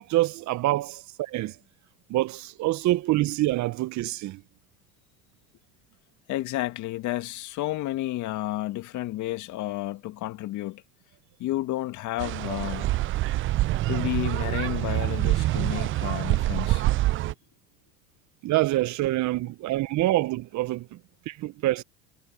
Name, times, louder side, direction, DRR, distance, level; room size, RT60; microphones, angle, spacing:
voice 1, 0.0-1.5 2.1-4.4 18.4-20.9 21.3-21.8, right 17 dB, 50° right, 1.2 m, -26 dB
voice 2, 6.3-10.8 11.4-12.9 13.9-16.9, left 16 dB, 55° left, 2.0 m, -31 dB
sound 1, 12.2-17.3, right 16 dB, 35° right, 0.4 m, -26 dB
hypercardioid pair, 80°, 36 cm